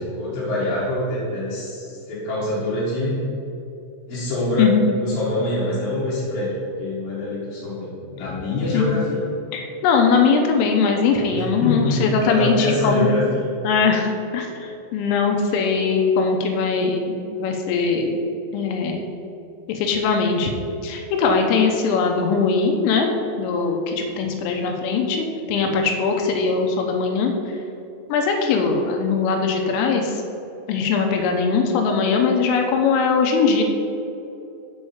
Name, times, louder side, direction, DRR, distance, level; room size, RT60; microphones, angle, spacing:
voice 1, 0.0-3.2 4.1-6.5 6.8-9.2 11.3-13.5, left 1 dB, 60° left, -10 dB, 2.6 m, -25 dB
voice 2, 9.5-13.1 13.6-14.1 14.3-18.2 18.5-19.1 19.7-20.5 20.8-23.1 23.4-27.3 28.1-30.2 30.7-33.6, left 5 dB, 85° left, 3 dB, 3.4 m, -20 dB
7.4 x 4.8 x 7.0 m, 2.7 s
omnidirectional pair, 5.7 m